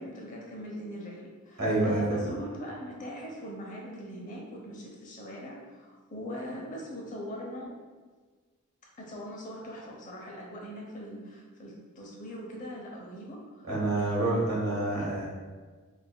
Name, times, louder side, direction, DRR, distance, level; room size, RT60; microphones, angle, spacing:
voice 1, 0.0-7.7 9.0-13.7 14.0-14.6 15.0-15.1, equal, 35° left, -2 dB, 0.8 m, -41 dB
voice 2, 1.6-2.2 13.7-15.3, right 2 dB, 85° right, -5 dB, 1.3 m, -27 dB
5.0 x 2.7 x 2.2 m, 1.4 s
head